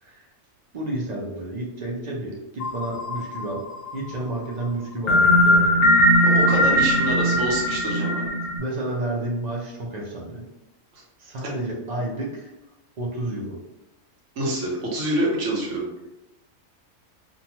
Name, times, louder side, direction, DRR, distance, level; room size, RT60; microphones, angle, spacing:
voice 1, 0.7-3.6 3.9-5.9 8.6-10.4 11.2-12.5 13.0-13.6, right 1 dB, 50° right, -2 dB, 0.5 m, -30 dB
sound 1, 2.6-3.9 5.1-8.6, equal, 65° left, 0.7 m, -19 dB
voice 2, 6.2-8.2 10.9-11.0 14.4-15.9, right 1 dB, 80° right, -2 dB, 1.1 m, -26 dB
2.6 x 2.2 x 2.8 m, 0.94 s
omnidirectional pair, 1.3 m